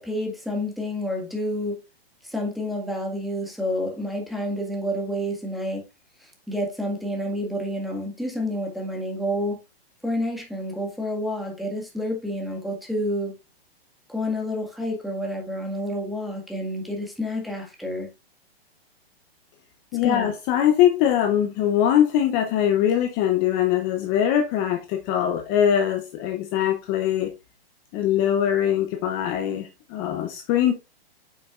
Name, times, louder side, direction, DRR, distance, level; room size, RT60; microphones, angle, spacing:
voice 1, 0.0-1.8 2.2-5.8 6.2-9.6 10.0-13.3 14.1-18.1 20.0-20.3, equal, ahead, 1.8 m, -29 dB
voice 2, 19.9-27.3 27.9-30.7, left 10 dB, 30° left, 0.8 m, -22 dB
9.1 x 6.3 x 2.5 m
hypercardioid pair, 140°, 31 cm